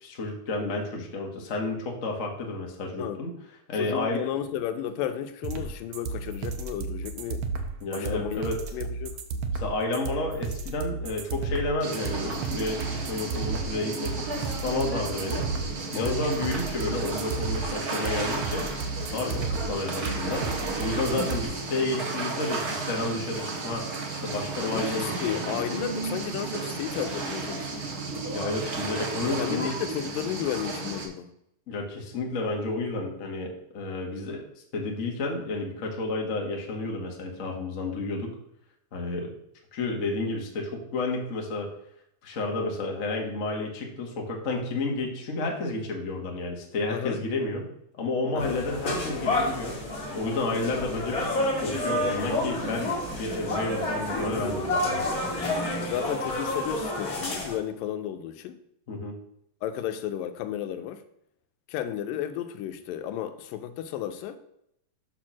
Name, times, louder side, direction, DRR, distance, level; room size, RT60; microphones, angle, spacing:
voice 1, 0.0-3.3 3.7-4.2 7.8-8.6 9.5-15.4 15.9-18.7 19.1-20.5 20.8-23.9 24.1-25.4 28.3-29.7 31.7-34.4 34.7-38.3 38.9-39.4 39.7-41.7 42.2-47.7 48.0-49.7 50.1-51.2 51.6-55.0 58.9-59.2, left 2 dB, 55° left, 0 dB, 0.9 m, -31 dB
voice 2, 3.7-7.4 7.9-8.5 8.7-9.2 15.9-16.3 19.2-19.5 24.6-27.8 29.4-31.3 46.9-47.2 48.3-48.6 55.8-58.6 59.6-61.0 61.7-64.4, left 10 dB, 85° left, 9 dB, 2.4 m, -33 dB
sound 1, 5.4-21.4, right 4 dB, 85° right, 1.4 m, -33 dB
sound 2, 11.8-31.1, right 3 dB, 55° right, 1.0 m, -33 dB
sound 3, 48.4-57.5, left 1 dB, 35° left, 1.7 m, -29 dB
6.9 x 4.4 x 6.1 m, 0.75 s
omnidirectional pair, 3.9 m